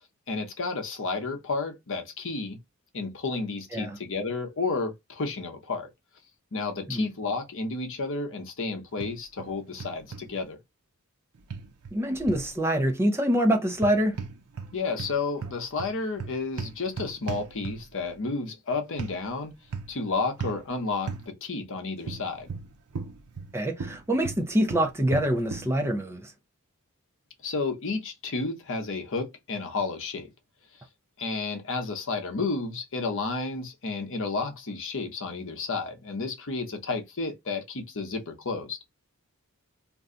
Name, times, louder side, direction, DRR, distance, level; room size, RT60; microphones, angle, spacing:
voice 1, 0.3-2.6 2.9-5.9 6.5-10.6 14.7-19.5 19.9-22.5 27.4-30.3 31.2-38.8, left 3 dB, 60° left, 0.9 m, -31 dB
sound 1, 9.0-9.5 9.8-10.2 11.5-12.5 13.7-14.7 15.0-18.0 19.0-19.2 19.7-20.0 20.4-20.6 21.1-21.3 22.1-23.5 23.8-25.7, right 4 dB, 80° right, 0.6 m, -36 dB
voice 2, 11.9-14.2 23.5-26.3, right 1 dB, 10° right, 0.6 m, -25 dB
2.6 x 2.2 x 3.7 m
head